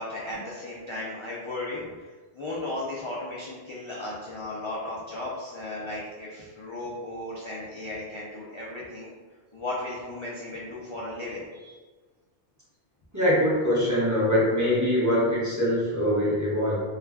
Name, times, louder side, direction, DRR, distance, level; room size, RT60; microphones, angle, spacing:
voice 1, 0.0-9.1 9.5-11.7, left 2 dB, 50° left, -5 dB, 0.3 m, -35 dB
voice 2, 13.1-16.8, equal, 20° right, -9 dB, 0.6 m, -23 dB
2.4 x 2.3 x 3.4 m, 1.4 s
omnidirectional pair, 1.1 m